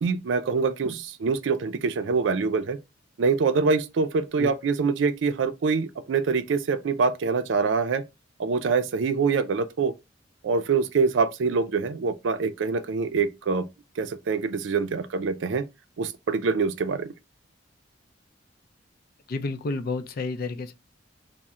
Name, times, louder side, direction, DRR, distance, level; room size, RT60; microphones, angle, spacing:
voice 1, 0.0-2.8 3.2-8.0 8.4-9.9 10.4-13.7 14.0-15.6 16.0-17.1, right 4 dB, 75° right, 0.4 m, -25 dB
voice 2, 19.3-20.7, left 3 dB, 55° left, 0.4 m, -30 dB
3.6 x 2.1 x 4.2 m
head